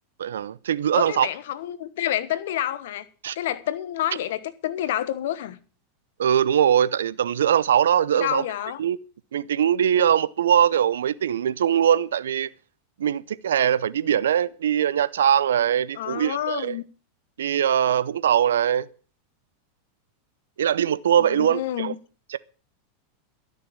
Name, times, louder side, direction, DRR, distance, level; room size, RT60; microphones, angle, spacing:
voice 1, 0.2-1.3 3.2-3.3 6.2-8.4 8.8-9.0 9.3-12.5 13.0-16.8 17.4-18.9 20.6-21.9 22.3-22.4, right 9 dB, 80° right, 0.7 m, -21 dB
voice 2, 0.9-3.0 3.3-5.6 8.1-8.8 15.9-16.8 21.2-21.9, left 12 dB, 70° left, 1.2 m, -28 dB
12.5 x 6.7 x 8.8 m
hypercardioid pair, 100°, 0 cm